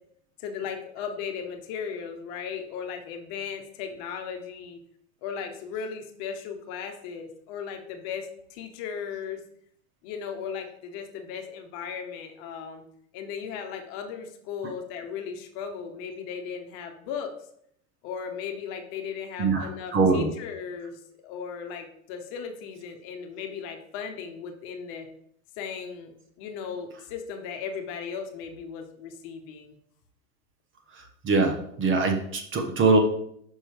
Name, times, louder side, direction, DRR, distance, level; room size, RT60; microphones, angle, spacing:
voice 1, 0.4-4.8 5.2-9.4 10.0-12.8 13.1-17.3 18.0-25.1 25.6-26.1 26.4-29.8, left 7 dB, 50° left, 5 dB, 1.1 m, -36 dB
voice 2, 19.4-20.3 31.2-33.0, right 3 dB, 25° right, 4 dB, 1.0 m, -23 dB
5.8 x 5.5 x 3.4 m, 0.68 s
hypercardioid pair, 110°, 44 cm